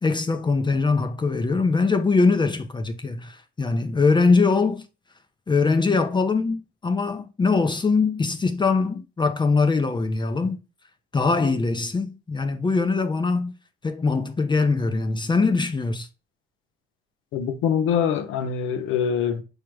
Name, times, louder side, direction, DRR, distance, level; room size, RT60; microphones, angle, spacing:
voice 1, 0.0-4.8 5.5-10.6 11.1-13.5 13.8-16.1, left 4 dB, 25° left, 0.5 m, -22 dB
voice 2, 17.3-19.4, left 7 dB, 90° left, 0.6 m, -24 dB
4.8 x 2.0 x 4.6 m
cardioid pair, 90°, 20 cm